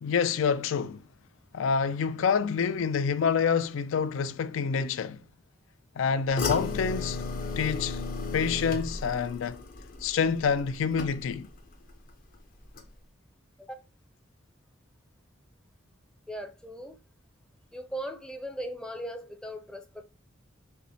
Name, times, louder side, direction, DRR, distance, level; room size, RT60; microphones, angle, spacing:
voice 1, 0.0-1.0 1.5-5.2 6.0-7.2 7.6-8.0 8.3-9.6 10.0-11.5, left 6 dB, 80° left, 0.4 m, -27 dB
sound 1, 6.4-11.6 11.9-12.4 12.8-12.9, left 4 dB, 45° left, 0.6 m, -35 dB
voice 2, 16.3-17.0 17.7-20.0, right 1 dB, 5° left, 0.4 m, -38 dB
5.5 x 2.1 x 2.7 m
head